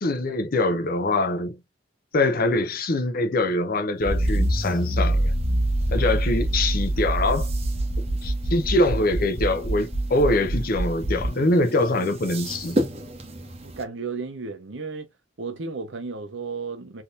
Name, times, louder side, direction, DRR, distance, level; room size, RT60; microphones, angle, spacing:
voice 1, 0.0-1.6 2.1-5.3 5.9-7.5 8.2-12.8, left 2 dB, 50° left, 0.6 m, -23 dB
Accelerating revving vroom, 4.0-11.3, right 1 dB, 15° left, 0.8 m, -25 dB
sound 1, 4.0-13.8, right 1 dB, 35° right, 0.8 m, -36 dB
voice 2, 13.6-15.1 15.4-17.0, right 4 dB, 85° right, 0.9 m, -33 dB
3.5 x 2.8 x 2.5 m
head